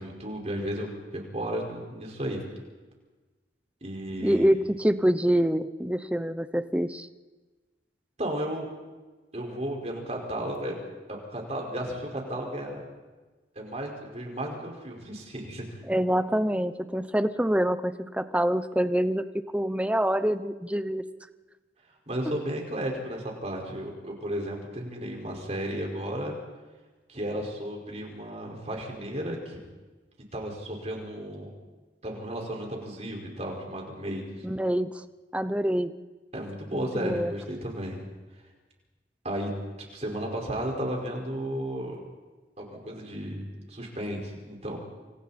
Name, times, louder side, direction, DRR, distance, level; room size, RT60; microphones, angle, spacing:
voice 1, 0.0-2.4 3.8-4.5 8.2-8.7 9.3-10.8 11.1-12.8 13.5-15.8 22.1-26.4 27.1-29.6 30.3-31.5 32.0-34.4 36.3-38.0 39.2-39.5 39.9-42.0 42.6-44.8, right 1 dB, 35° right, 0 dB, 5.1 m, -34 dB
voice 2, 4.2-7.1 15.9-19.2 19.5-21.0 34.4-35.0 35.3-35.9 36.7-37.3, equal, 5° right, 11 dB, 0.7 m, -26 dB
27.5 x 27.5 x 4.3 m, 1.3 s
head